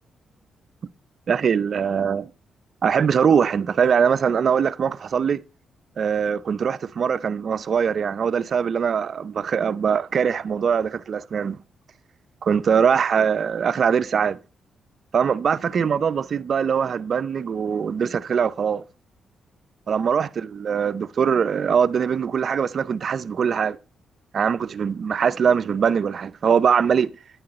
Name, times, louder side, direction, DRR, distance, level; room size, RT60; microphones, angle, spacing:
voice 1, 1.3-2.3 2.8-5.4 6.0-11.6 12.4-14.4 15.1-18.8 19.9-23.8 24.3-27.1, right 7 dB, 50° right, 0.5 m, -22 dB
10.5 x 9.6 x 4.1 m
cardioid pair, 110°, 0 cm